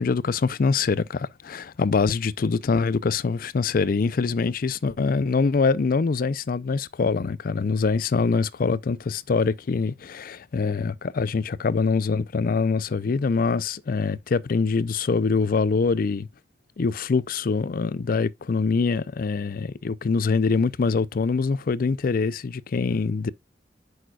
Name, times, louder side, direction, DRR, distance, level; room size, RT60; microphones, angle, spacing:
voice 1, 0.0-16.3 16.8-23.3, left 4 dB, 50° left, 0.4 m, -24 dB
9.1 x 6.5 x 2.3 m
head